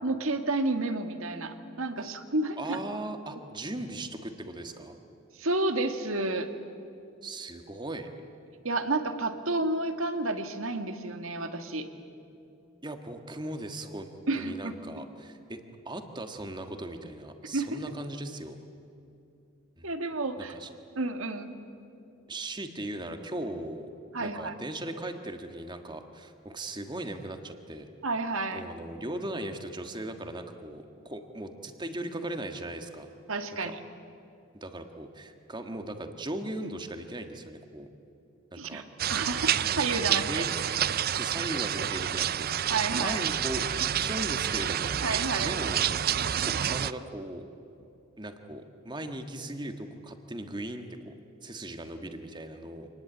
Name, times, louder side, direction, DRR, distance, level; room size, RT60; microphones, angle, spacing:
voice 1, 0.0-2.8 5.4-6.5 8.6-11.9 14.3-14.9 17.5-17.8 19.8-20.5 21.0-21.5 24.1-24.5 28.0-28.6 33.3-33.8 38.6-40.4 42.7-43.2 45.0-45.5, right 2 dB, 75° right, 7 dB, 1.8 m, -30 dB
voice 2, 2.6-5.0 7.2-8.1 12.8-15.6 15.8-18.6 19.8-19.9 20.4-20.7 22.3-23.9 24.2-27.9 28.5-33.1 33.6-33.7 34.6-37.9 38.5-38.8 40.1-40.5 41.1-45.0 45.4-45.9 46.4-47.4 48.2-51.1 51.4-52.9, right 1 dB, 20° right, 6 dB, 1.6 m, -38 dB
sound 1, 39.0-46.9, right 10 dB, 45° right, 0.5 m, -29 dB
26.5 x 20.0 x 9.2 m, 2.7 s
head